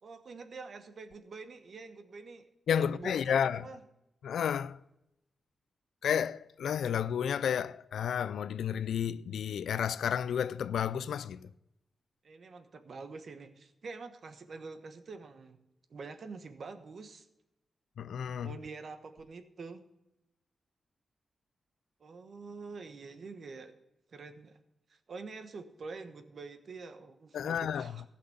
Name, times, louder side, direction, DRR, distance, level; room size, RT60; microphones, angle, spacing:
voice 1, 0.0-2.5 2.7-3.8 12.2-15.6 15.9-17.3 18.3-19.8 22.0-23.7 24.1-24.6 24.9-28.0, right 4 dB, 55° right, 1.2 m, -46 dB
voice 2, 2.7-3.7 4.2-4.8 6.0-11.5 18.0-18.5 27.3-27.9, left 8 dB, 90° left, 0.4 m, -31 dB
15.5 x 5.9 x 7.8 m
wide cardioid pair, 110°, 0 cm